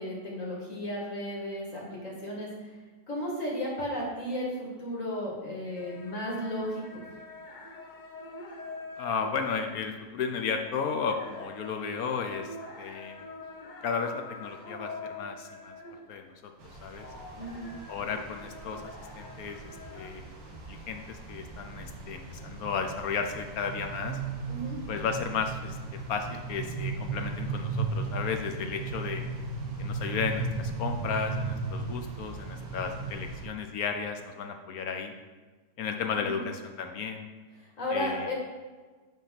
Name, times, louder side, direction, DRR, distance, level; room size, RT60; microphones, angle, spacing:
voice 1, 0.0-2.7 3.1-7.0 17.4-17.6 24.5-24.8 36.3-36.4 37.6-38.3, equal, 45° left, -3 dB, 2.2 m, -34 dB
sound 1, 5.7-16.4 16.7-20.1, left 2 dB, 85° left, 0.4 m, -45 dB
voice 2, 9.0-13.3 13.8-15.8 16.1-16.5 16.8-17.1 17.9-19.6 19.9-24.2 24.9-25.8 26.1-29.2 29.8-35.1 35.8-37.3 37.9-38.3, left 6 dB, 65° left, 5 dB, 0.9 m, -34 dB
sound 2, 16.6-33.5, right 4 dB, 75° right, 2.2 m, -36 dB
9.4 x 3.6 x 5.7 m, 1.4 s
omnidirectional pair, 2.0 m